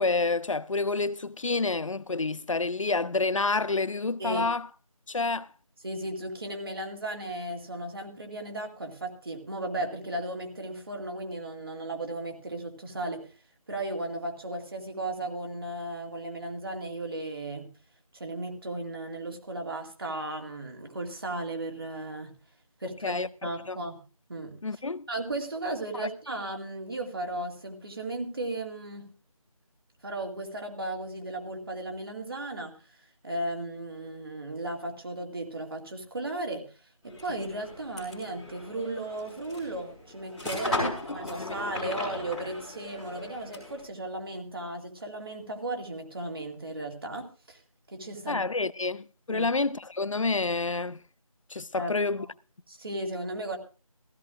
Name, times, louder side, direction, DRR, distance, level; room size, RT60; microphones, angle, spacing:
voice 1, 0.0-4.7 5.1-5.5 23.0-23.8 24.6-25.1 25.9-26.1 40.8-41.6 41.8-42.0 48.3-51.0 51.5-52.3, left 3 dB, 60° left, 0.6 m, -29 dB
voice 2, 5.8-13.3 13.7-17.7 18.1-22.4 22.8-24.0 24.3-24.6 25.1-29.1 30.0-32.7 33.2-36.7 37.0-47.6 47.9-48.5 49.3-49.5 51.7-52.3 52.7-53.6, right 1 dB, 40° right, 2.3 m, -35 dB
sound 1, 37.1-43.9, left 2 dB, ahead, 1.9 m, -37 dB
16.0 x 15.0 x 2.5 m
figure-of-eight pair, 170°, 18 cm